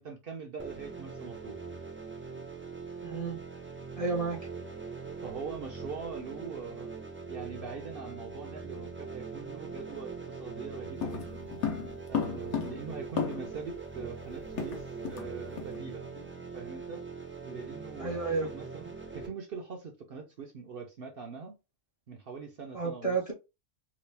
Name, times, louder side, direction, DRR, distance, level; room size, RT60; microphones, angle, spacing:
voice 1, 0.0-1.6 5.2-6.9 7.3-11.5 12.1-16.1 16.5-17.0 17.5-21.6 22.1-23.2, right 5 dB, 60° right, 0.7 m, -42 dB
sound 1, 0.6-19.3, right 5 dB, 15° right, 0.4 m, -42 dB
voice 2, 3.0-3.4 4.0-4.4 18.0-18.5 22.7-23.3, right 4 dB, 35° left, 0.7 m, -31 dB
sound 2, 11.0-13.7 13.9-14.0 14.3-15.3 15.6-15.8 16.2-16.4, left 7 dB, 70° left, 1.1 m, -34 dB
2.9 x 2.4 x 3.2 m
omnidirectional pair, 1.3 m